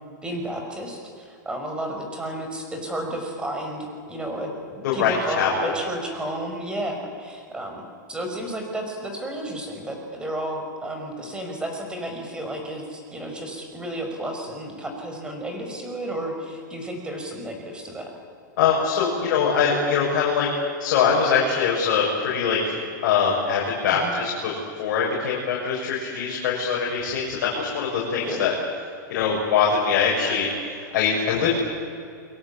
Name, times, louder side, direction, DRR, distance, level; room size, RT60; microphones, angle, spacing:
voice 1, 0.2-18.1 23.9-24.1 28.1-28.4 31.4-31.6, right 1 dB, 10° right, 3 dB, 5.8 m, -32 dB
voice 2, 4.8-5.7 18.6-20.5 20.8-28.5 29.1-31.6, left 6 dB, 60° left, -4 dB, 7.4 m, -23 dB
30.0 x 22.0 x 8.7 m, 2.4 s
supercardioid pair, 145°, 10 cm